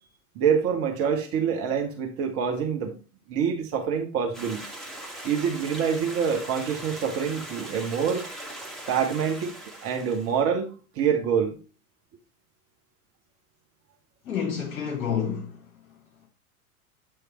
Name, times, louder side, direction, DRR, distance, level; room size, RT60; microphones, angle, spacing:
voice 1, 0.3-3.0 3.3-4.6 5.2-8.2 8.9-9.5 9.8-11.6, right 7 dB, 30° right, 1.2 m, -26 dB
Stream, 4.3-10.4, right 1 dB, ahead, 1.4 m, -40 dB
voice 2, 14.2-15.7, left 7 dB, 40° left, 3.5 m, -29 dB
8.3 x 3.5 x 4.4 m
figure-of-eight pair, 90°, 44 cm